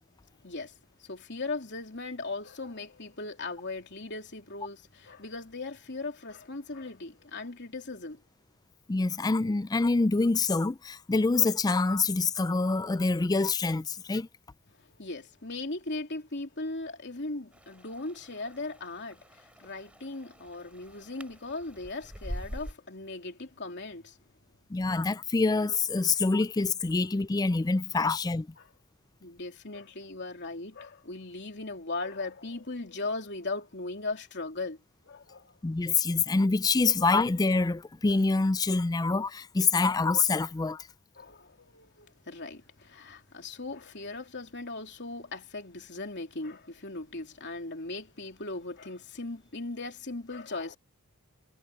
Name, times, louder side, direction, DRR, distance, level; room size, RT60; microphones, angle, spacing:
voice 1, 0.4-0.7 1.0-8.2 14.7-24.2 28.6-28.7 29.2-34.8 35.0-35.5 41.2-50.8, left 2 dB, 50° left, 3.2 m, -38 dB
voice 2, 8.9-14.3 24.7-28.5 35.6-40.9, left 3 dB, 15° left, 0.3 m, -26 dB
sound 1, 17.5-22.7, equal, 5° right, 4.3 m, -45 dB
head